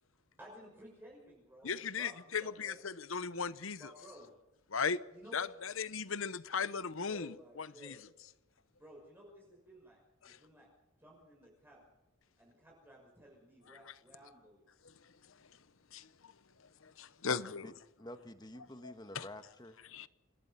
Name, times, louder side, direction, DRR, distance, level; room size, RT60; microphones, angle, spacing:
voice 1, 0.4-2.8 3.7-4.3 5.1-5.5 7.0-8.0 8.8-10.7 11.0-11.8 12.4-14.6, equal, 10° right, 6.0 m, -56 dB
voice 2, 1.6-3.8 4.7-5.0 5.3-8.0 10.2-10.4 15.9-16.0 17.0-17.6 19.1-19.2 19.9-20.1, left 5 dB, 70° left, 0.9 m, -37 dB
voice 3, 17.3-17.7 18.0-19.8, left 1 dB, 20° left, 1.4 m, -49 dB
27.5 x 20.0 x 5.8 m
head